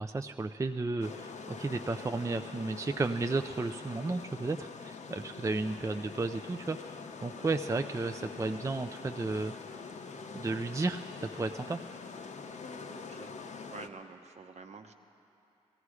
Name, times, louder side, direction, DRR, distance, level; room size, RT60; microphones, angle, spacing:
voice 1, 0.0-9.5 10.3-11.0 11.3-11.8, right 3 dB, 20° right, 6 dB, 0.4 m, -33 dB
sound 1, 1.0-13.9, left 5 dB, 60° left, 0.7 m, -44 dB
voice 2, 12.9-13.4 13.7-14.9, right 4 dB, 55° right, 5 dB, 1.0 m, -48 dB
16.0 x 14.5 x 4.9 m, 2.7 s
supercardioid pair, 45°, 13 cm